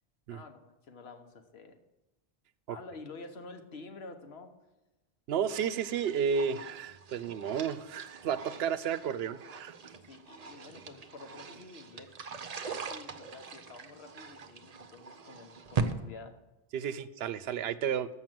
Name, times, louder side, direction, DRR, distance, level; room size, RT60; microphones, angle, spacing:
voice 1, 0.3-1.8 2.7-4.5 10.1-12.1 12.6-16.4, left 3 dB, 80° left, 6 dB, 1.2 m, -49 dB
voice 2, 5.3-9.7 16.7-18.1, right 7 dB, 80° right, 14 dB, 0.8 m, -32 dB
sound 1, 5.5-15.9, right 5 dB, 45° right, 0.7 m, -41 dB
7.4 x 5.9 x 7.7 m, 1.0 s
omnidirectional pair, 1.1 m